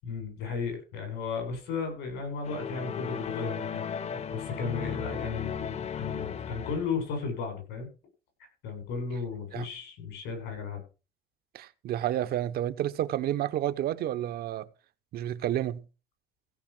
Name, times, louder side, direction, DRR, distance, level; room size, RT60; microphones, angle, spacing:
voice 1, 0.0-3.8 4.1-7.9 8.6-10.8, left 5 dB, 90° left, 7.3 m, -35 dB
sound 1, 2.4-7.1, left 7 dB, 40° left, 0.8 m, -35 dB
voice 2, 11.5-14.7 15.1-15.8, right 12 dB, 65° right, 0.9 m, -30 dB
16.0 x 5.6 x 6.1 m
cardioid pair, 110°, 17 cm